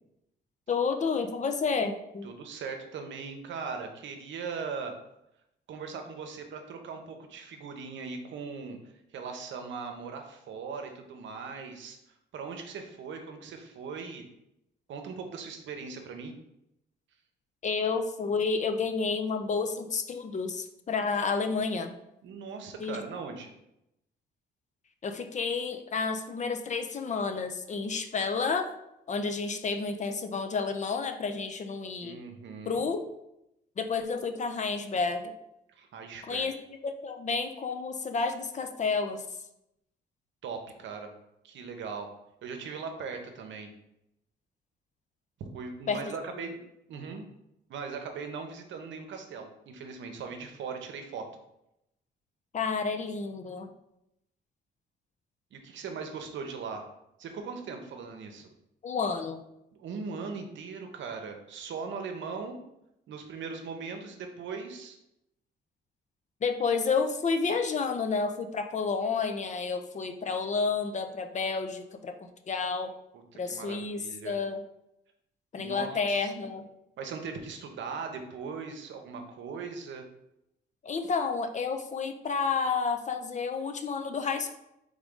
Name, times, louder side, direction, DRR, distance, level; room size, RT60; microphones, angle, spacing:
voice 1, 0.7-2.3 17.6-21.9 22.8-23.0 25.0-28.7 29.1-32.2 32.7-33.0 33.8-35.3 36.3-36.5 36.8-39.2 45.9-46.0 52.5-53.7 58.8-59.4 66.4-72.9 73.4-74.0 74.2-74.6 75.5-76.6 80.8-84.6, left 5 dB, 35° left, 6 dB, 0.5 m, -30 dB
voice 2, 2.2-5.0 5.7-8.8 9.1-12.0 12.3-14.2 14.9-16.3 22.2-23.5 32.0-32.8 35.7-36.5 40.4-41.1 41.4-42.1 42.4-43.7 45.4-46.6 46.9-47.3 47.7-51.3 55.5-56.9 57.2-58.5 59.7-62.6 63.1-65.0 73.3-74.4 75.6-76.3 77.0-80.0, right 5 dB, 70° right, 5 dB, 0.8 m, -39 dB
3.8 x 3.6 x 3.6 m, 0.83 s
cardioid pair, 90°, 20 cm